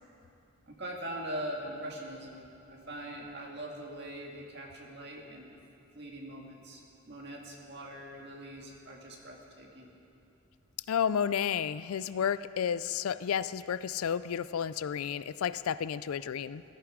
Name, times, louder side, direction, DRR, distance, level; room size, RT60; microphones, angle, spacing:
voice 1, 0.7-5.5 5.9-9.9, right 1 dB, 50° right, 0 dB, 1.9 m, -42 dB
voice 2, 10.9-16.6, left 8 dB, 85° left, 16 dB, 0.4 m, -31 dB
16.0 x 13.0 x 5.0 m, 2.7 s
head